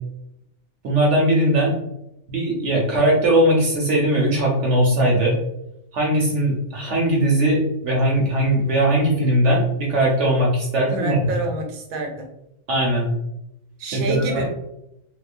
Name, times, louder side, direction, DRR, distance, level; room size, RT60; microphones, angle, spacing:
voice 1, 0.8-1.7 2.3-5.3 5.9-11.3 12.7-13.1 13.9-14.4, right 1 dB, 65° right, -2 dB, 0.9 m, -19 dB
voice 2, 10.9-12.3 13.8-14.5, right 3 dB, 85° right, 3 dB, 1.0 m, -28 dB
2.9 x 2.0 x 2.4 m, 0.83 s
omnidirectional pair, 1.4 m